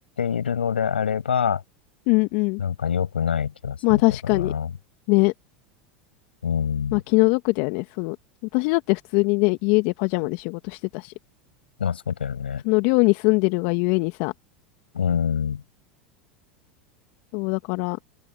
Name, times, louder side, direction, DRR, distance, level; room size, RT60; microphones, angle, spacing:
voice 1, 0.2-1.6 2.6-4.7 6.4-7.0 11.8-12.6 14.9-15.6, left 7 dB, 85° left, 6.9 m, -25 dB
voice 2, 2.1-2.6 3.8-4.5 5.1-5.3 6.9-8.2 8.5-11.1 12.6-14.3 17.3-18.0, left 29 dB, 60° left, 1.6 m, -22 dB
open air
hypercardioid pair, 85°, 5 cm